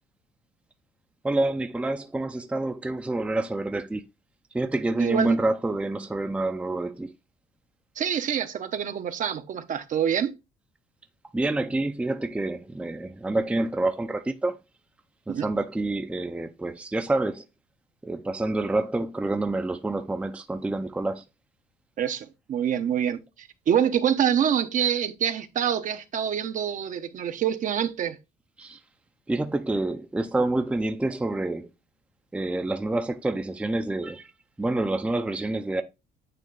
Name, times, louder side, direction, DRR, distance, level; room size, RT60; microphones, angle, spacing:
voice 1, 1.2-4.0 4.5-7.1 11.3-14.6 15.3-17.4 18.0-21.2 28.6-28.8 29.3-31.7 32.3-34.3 34.6-35.8, right 2 dB, 5° right, 0.5 m, -27 dB
voice 2, 5.0-5.4 8.0-10.3 15.3-15.5 22.0-28.2, right 9 dB, 50° right, 0.8 m, -26 dB
9.1 x 3.1 x 3.8 m
cardioid pair, 110°, 17 cm